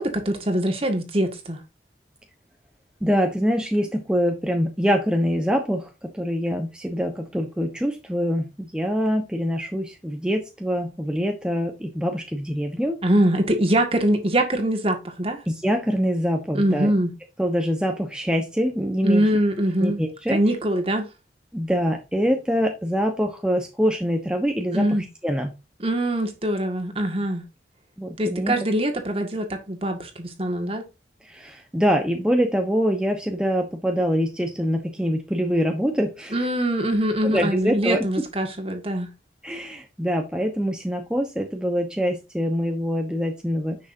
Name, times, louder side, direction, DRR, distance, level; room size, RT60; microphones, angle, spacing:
voice 1, 0.0-1.6 13.0-15.4 16.5-17.1 19.0-20.0 20.3-21.1 24.7-25.0 25.8-27.4 28.2-30.8 36.3-39.1, right 1 dB, 30° right, 1.9 m, -23 dB
voice 2, 3.0-13.0 15.5-16.9 17.4-19.2 19.8-20.4 21.5-24.9 25.2-25.5 28.0-28.6 31.2-36.4 37.2-38.1 39.4-43.8, equal, 5° right, 1.1 m, -24 dB
10.5 x 6.3 x 2.7 m
head